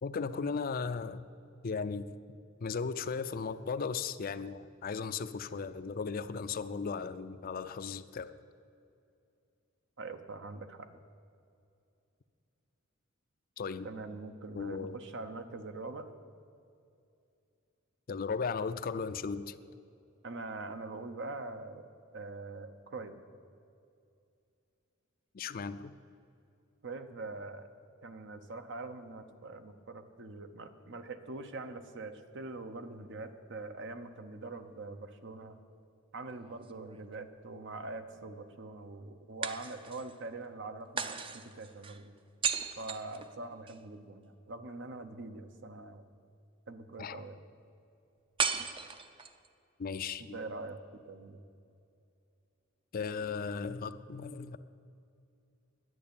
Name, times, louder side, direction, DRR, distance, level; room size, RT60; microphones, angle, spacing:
voice 1, 0.0-1.3 1.6-2.1 2.6-8.3 13.6-13.9 14.5-15.0 18.1-19.6 25.3-25.9 47.0-47.2 49.8-50.4 52.9-54.6, left 5 dB, 45° left, 12 dB, 0.5 m, -36 dB
voice 2, 10.0-10.9 13.8-16.1 20.2-21.8 22.1-23.2 26.8-27.7 28.0-35.6 36.1-42.1 42.8-46.0 46.7-47.4 50.2-50.8 51.1-51.4, right 3 dB, 60° right, 8 dB, 0.9 m, -43 dB
sound 1, 36.3-37.4 39.4-40.2 41.0-43.8 48.4-49.5, right 6 dB, 25° right, 0.6 m, -36 dB
11.0 x 9.4 x 8.6 m, 2.6 s
head